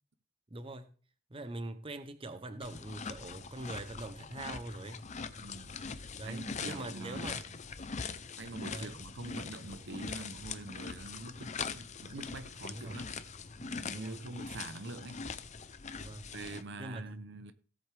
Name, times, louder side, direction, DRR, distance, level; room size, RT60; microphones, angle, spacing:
voice 1, 0.5-0.9 1.3-5.1 6.2-7.4 8.7-9.0 12.7-13.0 13.9-14.2 16.0-16.3 16.8-17.2, right 2 dB, 25° right, 0.8 m, -43 dB
sound 1, 2.6-16.6, left 5 dB, 35° left, 0.6 m, -42 dB
voice 2, 5.4-5.8 6.2-7.6 8.4-13.1 13.6-15.2 16.3-17.5, right 2 dB, 55° right, 0.8 m, -45 dB
17.0 x 7.7 x 3.4 m
head